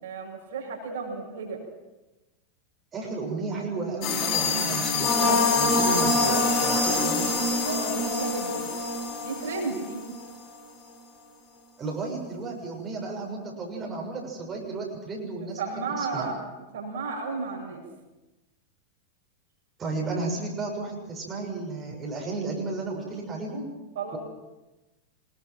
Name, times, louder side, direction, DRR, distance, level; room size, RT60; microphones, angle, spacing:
voice 1, 0.0-1.6 7.6-8.7 9.2-10.0 15.6-16.4 16.7-17.8 24.0-24.2, right 4 dB, 60° right, 0 dB, 7.3 m, -33 dB
voice 2, 2.9-7.3 11.8-16.3 19.8-23.6, right 3 dB, 25° right, -1 dB, 6.5 m, -33 dB
sound 1, 4.0-10.3, left 3 dB, 40° left, 5.1 m, -25 dB
25.0 x 22.0 x 6.1 m, 1.1 s
figure-of-eight pair, 90°, 0 cm